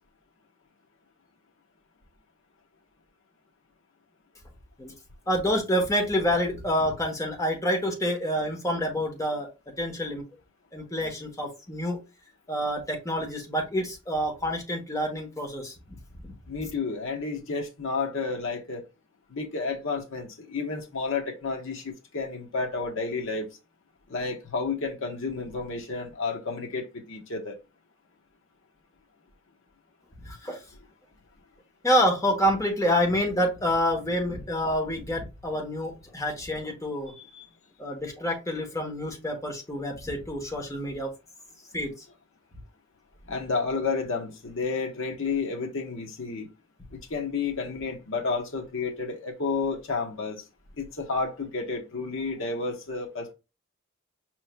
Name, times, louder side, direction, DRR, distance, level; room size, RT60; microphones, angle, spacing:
voice 1, 5.3-9.5 9.8-10.2 10.7-12.0 12.5-16.0 16.2-16.3 30.2-30.6 31.8-37.1 37.8-41.1 41.7-41.9, equal, 15° left, 1.0 m, -27 dB
voice 2, 16.5-18.8 19.3-23.5 24.1-27.6 37.3-37.4 43.3-46.5 46.9-50.4 50.8-53.3, left 4 dB, 65° left, 0.9 m, -31 dB
5.3 x 3.1 x 2.2 m
head